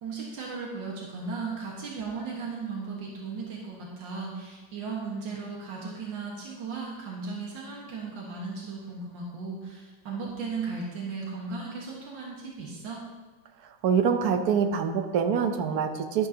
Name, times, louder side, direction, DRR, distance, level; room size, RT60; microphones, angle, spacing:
voice 1, 0.0-13.0, right 4 dB, 90° right, -3 dB, 2.2 m, -36 dB
voice 2, 13.8-16.3, right 7 dB, 65° right, 6 dB, 1.2 m, -25 dB
11.5 x 11.0 x 2.8 m, 1.3 s
omnidirectional pair, 1.9 m